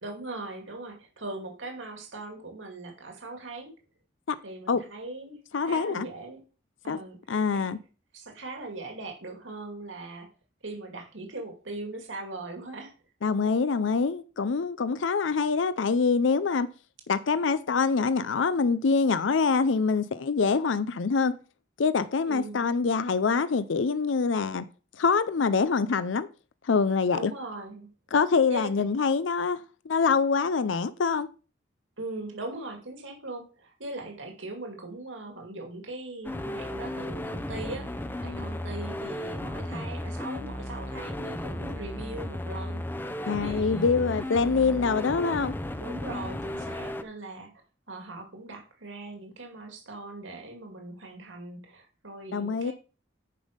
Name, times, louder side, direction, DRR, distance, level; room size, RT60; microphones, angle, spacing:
voice 1, 0.0-3.7 4.4-6.4 6.8-7.2 7.5-7.7 8.1-10.3 10.6-12.9 22.3-22.6 27.1-27.9 28.5-28.9 32.0-44.1 45.8-47.5 47.9-52.7, right 2 dB, 80° right, 2.4 m, -40 dB
voice 2, 5.5-6.1 6.9-7.0 7.3-7.8 13.2-16.7 17.1-21.4 21.8-24.7 25.0-26.3 26.6-27.3 28.1-31.3 38.2-38.6 43.3-45.5 52.3-52.7, left 5 dB, 75° left, 0.5 m, -25 dB
sound 1, 36.2-47.0, left 1 dB, 10° left, 0.6 m, -35 dB
10.0 x 5.3 x 5.1 m
head